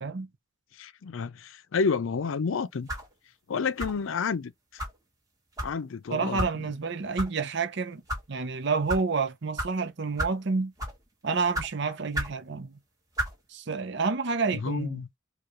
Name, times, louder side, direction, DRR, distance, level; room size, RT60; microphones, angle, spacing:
voice 1, 0.8-2.9 3.5-4.8 5.6-6.7 14.5-15.1, left 5 dB, 80° left, 0.5 m, -30 dB
sound 1, 2.9-3.1 3.8-4.1 4.8-5.0 5.6-5.7 6.4-6.5 7.2-7.3 7.9-8.2 8.9-9.0 9.6-9.7 10.2-10.4 10.8-11.0 11.5-11.7 12.1-12.4 13.1-13.3, right 1 dB, 20° right, 1.5 m, -31 dB
voice 2, 6.1-8.0 8.3-10.7 11.2-12.8 13.5-15.0, right 4 dB, 60° right, 0.7 m, -29 dB
4.5 x 2.4 x 3.0 m
head